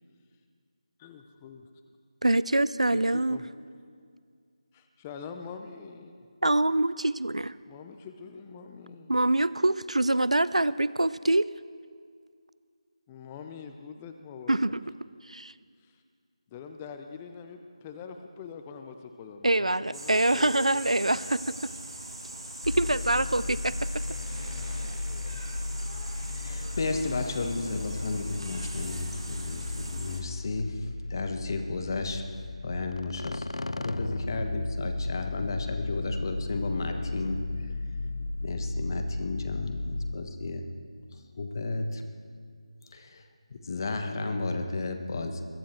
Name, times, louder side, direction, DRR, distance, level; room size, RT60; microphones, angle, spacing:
voice 1, 1.0-1.7 2.9-3.5 4.7-6.3 7.6-9.2 13.1-14.7 15.8-16.0 16.5-21.1, left 6 dB, 15° left, 6 dB, 0.5 m, -44 dB
voice 2, 2.2-3.4 6.4-7.5 9.1-11.5 14.5-14.8 15.3-15.5 19.4-21.6 22.7-23.9, right 1 dB, 90° right, 18 dB, 0.5 m, -25 dB
sound 1, 19.9-30.2, right 1 dB, 55° right, 2.6 m, -41 dB
sound 2, 22.6-40.2, left 3 dB, 70° left, 0.6 m, -35 dB
voice 3, 26.4-32.2 32.6-33.5 33.8-37.7 38.4-40.7 41.1-42.0 42.8-43.3 43.6-45.4, left 3 dB, 40° left, 5 dB, 1.3 m, -33 dB
22.0 x 10.0 x 4.5 m, 2.1 s
figure-of-eight pair, 160°, 3 cm